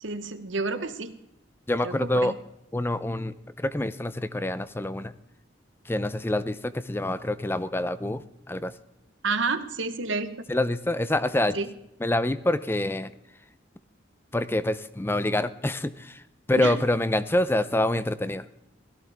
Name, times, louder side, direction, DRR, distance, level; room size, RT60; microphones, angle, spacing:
voice 1, 0.0-1.2 1.8-2.3 9.2-10.5 11.5-11.7 16.6-16.8, right 4 dB, 75° right, 10 dB, 1.1 m, -30 dB
voice 2, 1.7-2.3 2.7-5.1 5.8-8.7 10.5-11.6 12.0-13.1 14.3-16.2 16.5-18.5, left 1 dB, 10° left, 14 dB, 0.6 m, -26 dB
17.5 x 14.5 x 3.5 m, 0.85 s
head